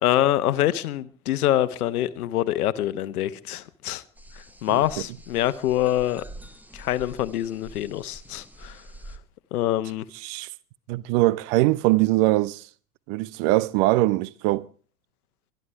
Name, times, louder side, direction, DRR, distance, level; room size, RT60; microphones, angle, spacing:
voice 1, 0.0-4.0 4.6-6.2 6.7-8.8 9.5-10.1, left 13 dB, 65° left, 1.2 m, -25 dB
sound 1, 4.1-9.2, right 1 dB, 5° right, 1.1 m, -46 dB
voice 2, 10.9-12.6 13.1-14.7, right 19 dB, 40° right, 0.7 m, -22 dB
23.5 x 10.5 x 4.7 m
figure-of-eight pair, 75°, 48 cm